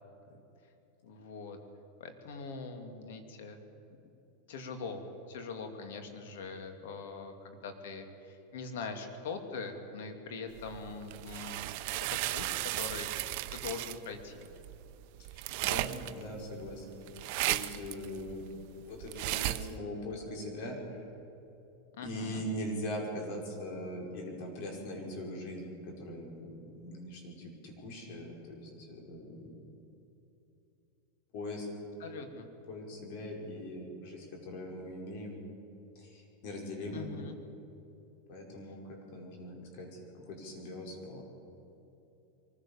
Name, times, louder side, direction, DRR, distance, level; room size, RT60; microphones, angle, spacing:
voice 1, 1.0-1.6 2.0-3.6 4.5-11.7 12.1-13.2 13.5-14.5 21.9-22.4 32.0-32.5 36.9-37.4, left 4 dB, 75° left, 6 dB, 2.7 m, -42 dB
sound 1, 10.6-19.8, right 17 dB, 60° right, 0.7 m, -36 dB
voice 2, 15.3-17.0 17.4-18.5 18.8-21.0 22.0-29.5 31.3-31.7 32.7-35.4 36.0-37.1 38.3-41.2, left 1 dB, 60° left, 0 dB, 5.6 m, -41 dB
23.5 x 16.0 x 7.2 m, 2.9 s
supercardioid pair, 130°, 0 cm